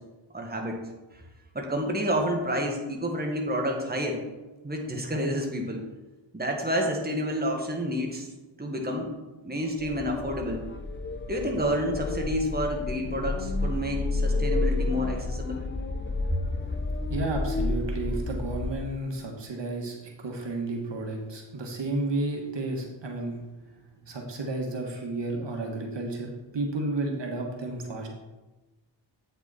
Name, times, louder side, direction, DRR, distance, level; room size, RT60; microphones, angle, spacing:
voice 1, 0.3-0.8 1.1-1.2 1.5-4.2 4.6-5.8 6.3-8.3 8.6-9.1 9.4-10.6 11.3-15.6 16.3-16.4, equal, 20° right, 1 dB, 1.6 m, -29 dB
sound 1, 9.8-18.7, left 2 dB, 25° left, 0.8 m, -30 dB
voice 2, 17.1-23.4 24.1-28.1, right 2 dB, 60° right, 1 dB, 1.6 m, -32 dB
8.7 x 6.0 x 4.2 m, 1.1 s
cardioid pair, 60°, 48 cm